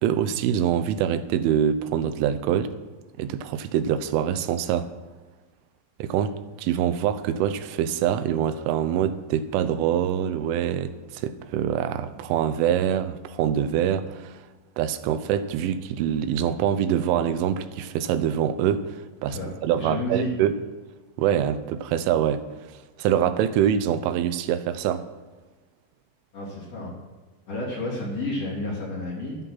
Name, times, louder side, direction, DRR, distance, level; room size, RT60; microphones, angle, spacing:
voice 1, 0.0-2.8 3.2-4.9 6.0-14.4 14.8-20.6 21.2-22.4 23.0-25.1, right 9 dB, 85° right, 3.2 m, -25 dB
voice 2, 19.8-20.3 26.3-26.9 27.5-29.4, left 1 dB, 35° left, 3.7 m, -30 dB
12.0 x 11.0 x 5.7 m
omnidirectional pair, 5.5 m